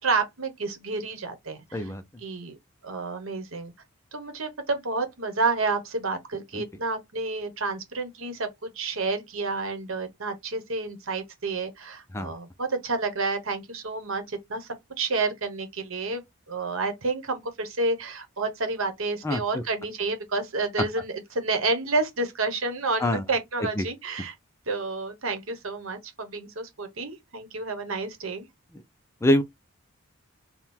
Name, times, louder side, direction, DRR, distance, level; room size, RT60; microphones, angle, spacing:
voice 1, 0.0-1.8 2.2-2.6 2.8-3.7 4.1-14.7 15.0-16.2 16.5-24.3 24.7-28.5, right 3 dB, 80° right, 1.1 m, -30 dB
voice 2, 1.7-2.0 6.5-6.6 12.1-12.3 19.2-19.6 23.0-23.2 23.6-23.9 29.2-29.4, left 1 dB, 15° left, 0.4 m, -25 dB
3.6 x 2.2 x 4.3 m
head